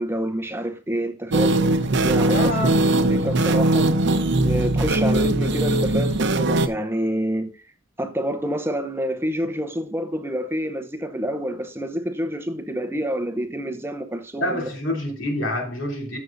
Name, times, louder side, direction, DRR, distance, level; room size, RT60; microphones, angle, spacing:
voice 1, 0.0-2.5 3.1-3.9 4.4-7.5 8.0-14.7, equal, 10° right, 0.7 m, -28 dB
sound 1, 1.3-6.7, right 2 dB, 65° right, 0.8 m, -20 dB
voice 2, 2.2-2.9 14.4-16.2, left 1 dB, 70° left, 3.0 m, -27 dB
14.5 x 6.3 x 2.6 m
head